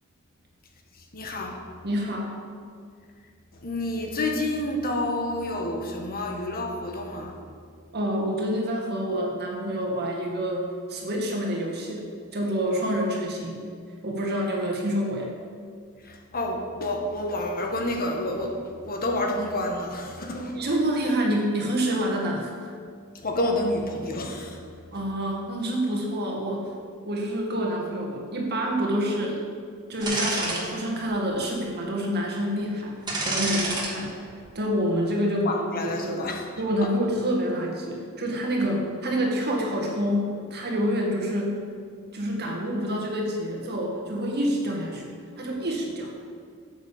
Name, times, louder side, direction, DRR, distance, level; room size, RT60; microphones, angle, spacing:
voice 1, 1.1-1.6 3.6-7.3 16.3-20.5 23.2-24.5 35.4-36.4, left 1 dB, 45° left, 1 dB, 1.5 m, -29 dB
voice 2, 1.8-2.3 7.9-13.6 14.0-15.3 20.5-22.7 24.9-26.7 27.0-29.4 29.9-32.9 33.2-34.3 34.5-36.3 36.6-41.6 42.1-46.3, equal, 50° right, -1 dB, 2.1 m, -27 dB
sound 1, 30.0-30.6 31.1-31.2 33.1-33.9 34.3-34.5, right 2 dB, 20° right, 2.2 m, -27 dB
9.5 x 8.0 x 7.2 m, 2.1 s
head